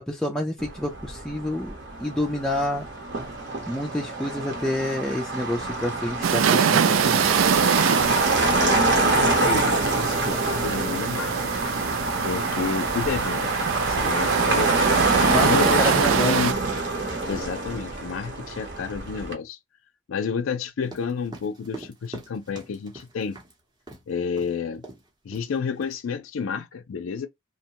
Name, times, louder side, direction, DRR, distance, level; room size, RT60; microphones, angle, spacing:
voice 1, 0.0-1.7 2.0-2.9 3.7-7.4 15.2-16.4, left 1 dB, 5° left, 0.4 m, -28 dB
Motor vehicle (road), 0.6-19.3, right 2 dB, 60° right, 0.9 m, -26 dB
sound 1, 6.2-16.5, right 7 dB, 75° right, 0.4 m, -25 dB
voice 2, 8.4-11.3 12.2-14.9 15.4-16.6 17.3-19.6 20.1-23.4 24.1-24.8 25.2-27.3, left 6 dB, 75° left, 0.4 m, -30 dB
sound 2, 20.8-23.5 23.9-24.1 24.4-24.5 24.8-25.1 25.3-25.9, right 2 dB, 20° right, 0.8 m, -42 dB
2.8 x 2.2 x 2.8 m
head